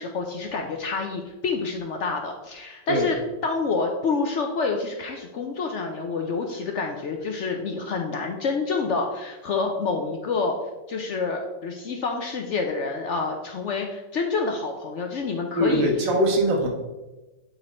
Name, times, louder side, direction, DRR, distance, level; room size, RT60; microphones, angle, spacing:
voice 1, 0.0-3.2 3.4-10.6 10.9-15.9, left 4 dB, 75° left, 3 dB, 0.6 m, -28 dB
voice 2, 15.6-16.7, equal, 85° right, 1 dB, 2.0 m, -22 dB
8.5 x 4.0 x 4.2 m, 1.1 s
omnidirectional pair, 2.0 m